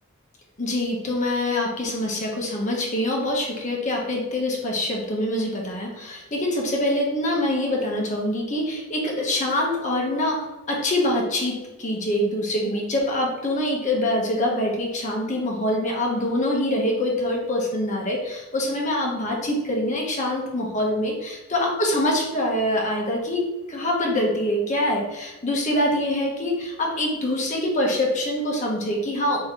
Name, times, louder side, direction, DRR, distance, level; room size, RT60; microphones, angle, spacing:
voice 1, 0.6-29.4, left 1 dB, 35° left, -1 dB, 0.8 m, -25 dB
3.6 x 2.8 x 4.4 m, 1.1 s
head